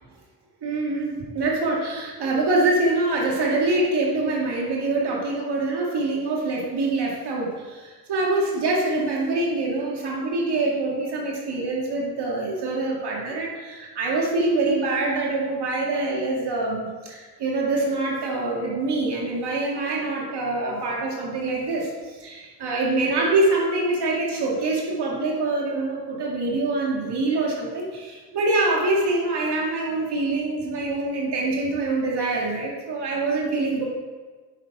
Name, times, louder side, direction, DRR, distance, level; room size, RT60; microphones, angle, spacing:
voice 1, 0.6-33.9, right 2 dB, 70° right, -2 dB, 2.3 m, -25 dB
8.6 x 6.4 x 4.8 m, 1.4 s
supercardioid pair, 55°, 42 cm